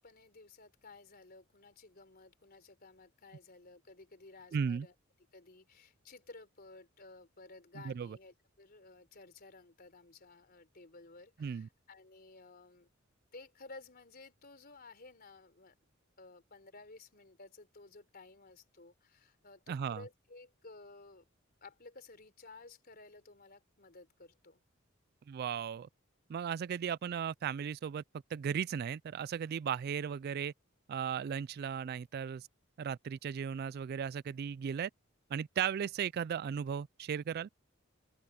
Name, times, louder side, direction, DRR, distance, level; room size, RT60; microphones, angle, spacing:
voice 1, 0.0-4.9 5.3-12.9 13.3-15.8 16.2-21.2 21.6-24.6, left 3 dB, 50° left, 3.8 m, -55 dB
voice 2, 4.5-4.9 7.8-8.2 11.4-11.7 19.7-20.0 25.3-25.9 26.3-28.0 28.3-30.5 30.9-32.5 32.8-34.9 35.3-37.5, right 7 dB, 50° right, 0.3 m, -36 dB
open air
head